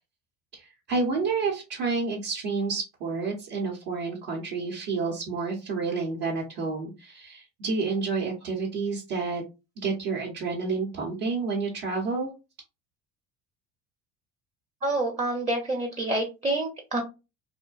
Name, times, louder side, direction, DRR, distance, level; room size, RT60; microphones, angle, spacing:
voice 1, 0.5-9.4 9.8-12.3, right 4 dB, 65° right, -3 dB, 1.0 m, -29 dB
voice 2, 14.8-17.0, right 2 dB, 15° right, 2 dB, 0.5 m, -27 dB
2.5 x 2.1 x 2.3 m, 0.28 s
hypercardioid pair, 70°, 43 cm